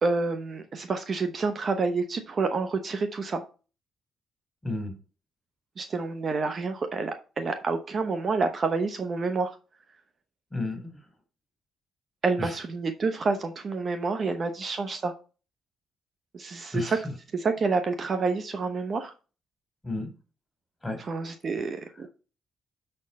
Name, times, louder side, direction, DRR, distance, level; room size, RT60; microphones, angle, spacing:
voice 1, 0.0-3.4 5.8-9.6 12.2-15.1 16.3-17.0 17.3-19.1 21.0-22.1, right 4 dB, 45° right, 1.0 m, -28 dB
voice 2, 4.6-4.9 10.5-11.0 12.4-12.5 16.7-17.0 19.8-20.1 20.8-21.0, left 2 dB, 15° left, 3.3 m, -31 dB
6.9 x 4.5 x 5.3 m
cardioid pair, 90°, 0 cm